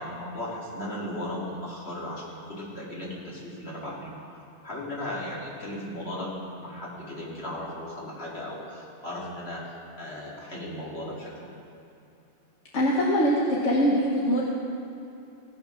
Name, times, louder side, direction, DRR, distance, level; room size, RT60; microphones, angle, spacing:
voice 1, 0.0-11.5, left 1 dB, 60° left, -5 dB, 2.6 m, -36 dB
voice 2, 12.7-14.4, equal, 90° left, -3 dB, 1.4 m, -23 dB
16.5 x 5.8 x 5.6 m, 2.8 s
omnidirectional pair, 1.2 m